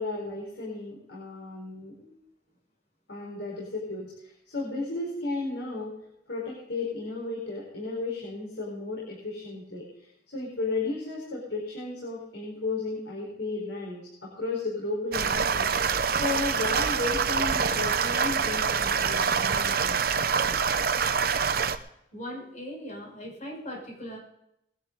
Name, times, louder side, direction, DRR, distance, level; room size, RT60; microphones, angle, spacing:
voice 1, 0.0-2.1 3.1-5.9 6.3-9.8 10.3-15.7 16.1-20.0, left 3 dB, 85° left, -4 dB, 4.6 m, -34 dB
sound 1, 15.1-21.8, right 6 dB, 55° right, 0.8 m, -25 dB
voice 2, 22.1-24.2, equal, 40° left, -2 dB, 6.4 m, -39 dB
21.0 x 11.0 x 4.0 m, 0.79 s
head